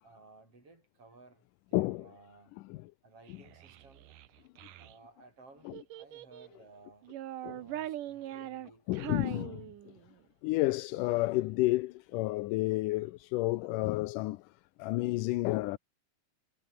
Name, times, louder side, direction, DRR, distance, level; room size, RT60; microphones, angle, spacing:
voice 1, 0.0-2.5 3.0-4.2 4.8-7.1 7.4-9.4, right 3 dB, 45° right, 8.9 m, -58 dB
voice 2, 1.7-2.1 2.7-2.8 5.7-5.8 7.4-7.6 8.9-9.7 10.4-14.4 14.8-15.8, left 19 dB, 90° left, 2.3 m, -30 dB
Child speech kid speaking, 3.3-4.9 5.7-6.6 7.0-10.2, right 13 dB, 90° right, 2.9 m, -42 dB
omnidirectional pair, 3.6 m